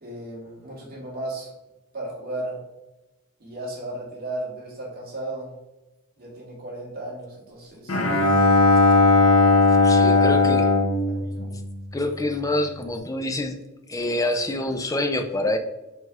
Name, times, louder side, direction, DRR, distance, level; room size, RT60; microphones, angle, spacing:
voice 1, 0.0-1.5 1.9-2.6 3.4-5.5 6.2-8.0 10.0-10.7 11.1-11.6, right 1 dB, 45° right, -5 dB, 2.2 m, -35 dB
Bowed string instrument, 7.9-12.2, left 3 dB, 70° left, 1.2 m, -18 dB
voice 2, 9.7-10.6 11.9-13.6 13.9-15.6, left 1 dB, 15° left, 6 dB, 0.5 m, -26 dB
4.7 x 4.6 x 4.7 m, 1.0 s
head